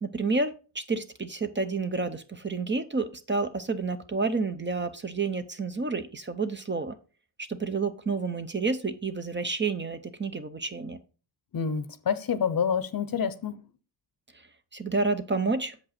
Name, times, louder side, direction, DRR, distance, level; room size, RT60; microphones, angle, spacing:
voice 1, 0.0-6.9 7.4-11.0 14.7-15.8, right 3 dB, 25° right, 0.7 m, -30 dB
voice 2, 11.5-13.6, left 7 dB, 50° left, 0.8 m, -28 dB
7.3 x 5.3 x 4.2 m
cardioid pair, 95°, 45 cm